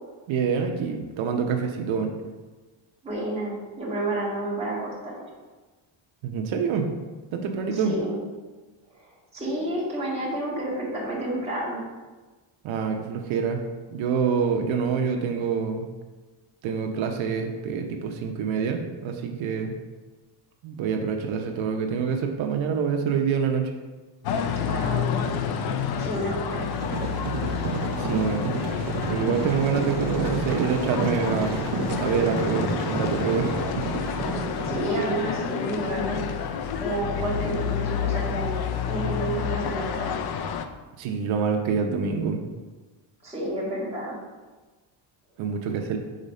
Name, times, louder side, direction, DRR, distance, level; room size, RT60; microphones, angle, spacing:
voice 1, 0.3-2.1 6.2-6.9 7.3-7.9 12.6-13.6 13.9-15.9 16.6-19.7 20.6-23.7 28.0-28.4 29.1-31.6 32.0-33.6 37.0-37.1 41.0-42.4 45.4-46.0, right 6 dB, 90° right, 3 dB, 0.8 m, -26 dB
voice 2, 3.0-5.3 7.7-8.2 9.3-11.8 24.6-25.3 26.0-26.6 34.6-36.2 36.8-38.5 38.9-40.1 43.2-44.2, right 1 dB, 15° right, -7 dB, 2.0 m, -30 dB
sound 1, 24.2-40.6, left 7 dB, 55° left, 0.5 m, -29 dB
sound 2, 26.5-35.6, right 4 dB, 45° right, 0.8 m, -31 dB
5.3 x 4.1 x 5.3 m, 1.2 s
cardioid pair, 160°, 45 cm